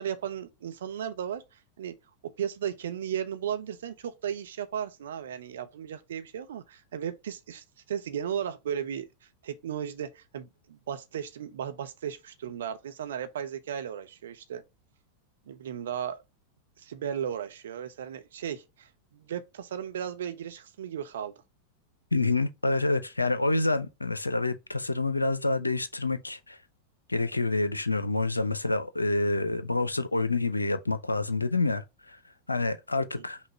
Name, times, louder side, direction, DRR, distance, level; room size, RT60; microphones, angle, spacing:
voice 1, 0.0-2.0 2.2-14.6 15.5-16.2 16.8-21.3 33.2-33.3, right 9 dB, 60° right, 0.6 m, -35 dB
voice 2, 22.1-26.6 27.1-32.2 32.5-33.4, left 2 dB, 80° left, 0.4 m, -27 dB
5.7 x 2.2 x 3.1 m
figure-of-eight pair, 90°, 0 cm